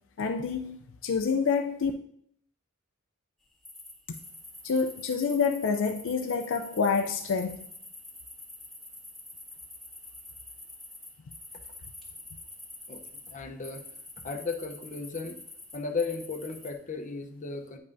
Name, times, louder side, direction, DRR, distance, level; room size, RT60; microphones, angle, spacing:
voice 1, 0.2-1.9 4.6-7.6, left 5 dB, 65° left, 5 dB, 0.4 m, -27 dB
sound 1, 3.6-13.3 13.6-16.7, left 2 dB, ahead, 1.8 m, -46 dB
voice 2, 13.3-13.8 14.2-15.4 15.7-17.8, left 4 dB, 35° left, 4 dB, 0.7 m, -35 dB
9.6 x 5.4 x 2.6 m, 0.68 s
head